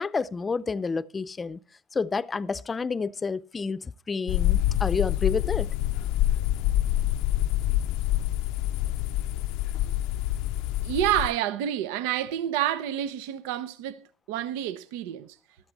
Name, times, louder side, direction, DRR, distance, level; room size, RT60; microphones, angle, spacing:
voice 1, 0.0-1.6 1.9-5.7, left 4 dB, 25° left, 0.6 m, -29 dB
sound 1, 4.3-11.3, left 14 dB, 75° left, 0.5 m, -26 dB
voice 2, 10.8-15.4, right 11 dB, 80° right, 0.8 m, -28 dB
14.0 x 12.0 x 4.1 m
supercardioid pair, 90°, 0 cm